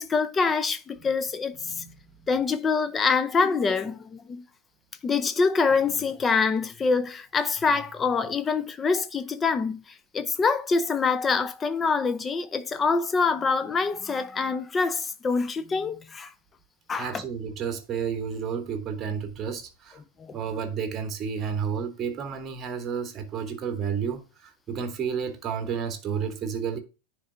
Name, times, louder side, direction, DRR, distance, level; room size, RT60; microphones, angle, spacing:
voice 1, 0.0-1.5 2.3-4.4 5.0-9.8 10.1-16.3 16.9-17.2 20.2-20.4, left 4 dB, 20° left, 0.6 m, -25 dB
voice 2, 1.5-2.3 17.0-20.0 20.3-26.8, right 7 dB, 25° right, 1.0 m, -31 dB
9.8 x 3.3 x 3.8 m
figure-of-eight pair, 90°, 0 cm